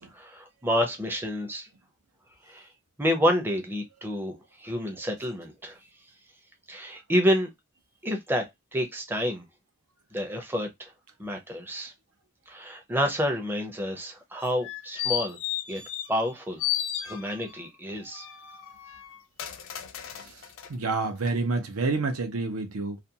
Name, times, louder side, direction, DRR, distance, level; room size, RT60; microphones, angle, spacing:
voice 1, 0.1-1.7 2.5-2.7 3.0-5.8 6.7-7.5 8.0-8.4 8.7-9.4 10.1-10.9 11.2-11.9 12.5-15.4 15.7-15.8 16.1-16.6 17.0-18.3, equal, 10° right, 0.5 m, -29 dB
sound 1, 14.4-16.3 16.6-17.6 18.1-20.7 21.2-21.3, left 11 dB, 60° left, 0.4 m, -34 dB
voice 2, 20.7-23.0, right 3 dB, 80° right, 0.7 m, -28 dB
2.5 x 2.2 x 2.7 m
head